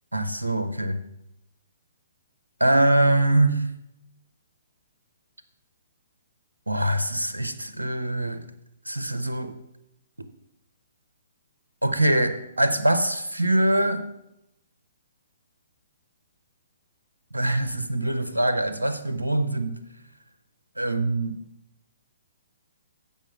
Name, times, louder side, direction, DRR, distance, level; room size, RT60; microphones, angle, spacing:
voice 1, 0.1-1.0 2.6-3.7 6.7-8.5 8.9-9.5 11.8-14.0 17.3-19.8 20.8-21.4, right 1 dB, 85° right, 9 dB, 0.6 m, -23 dB
7.4 x 5.1 x 6.3 m, 0.84 s
figure-of-eight pair, 125°, 0 cm